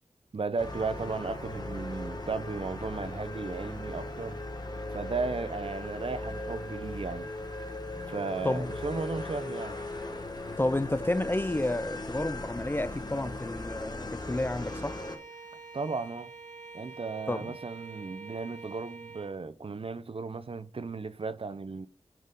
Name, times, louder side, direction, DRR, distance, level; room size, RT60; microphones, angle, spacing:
voice 1, 0.3-4.4 4.9-7.3 8.1-9.8 15.7-16.3 16.7-21.9, right 4 dB, 50° right, 0.5 m, -35 dB
sound 1, 0.6-15.2, left 2 dB, 35° left, 1.2 m, -38 dB
voice 2, 10.6-15.0 17.3-17.5, left 1 dB, 20° left, 0.4 m, -30 dB
Bowed string instrument, 14.5-19.4, right 4 dB, 90° right, 1.4 m, -46 dB
9.3 x 4.0 x 3.6 m
wide cardioid pair, 60°, 12 cm